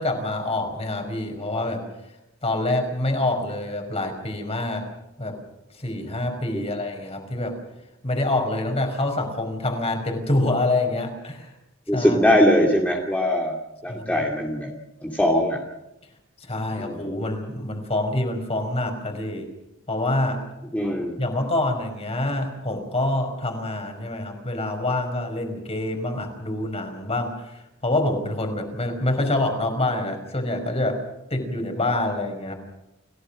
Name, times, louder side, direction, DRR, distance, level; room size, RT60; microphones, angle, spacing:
voice 1, 0.0-1.8 2.4-4.9 5.2-5.4 5.8-7.6 8.0-11.5 11.9-12.2 13.9-14.1 16.4-19.5 19.9-20.4 21.2-31.0 31.3-32.5, left 2 dB, 30° left, 4 dB, 5.1 m, -26 dB
voice 2, 11.9-13.6 13.8-14.7 15.0-15.6 16.8-17.1 20.7-21.2, equal, 5° left, -1 dB, 2.5 m, -21 dB
30.0 x 17.0 x 6.4 m, 0.92 s
head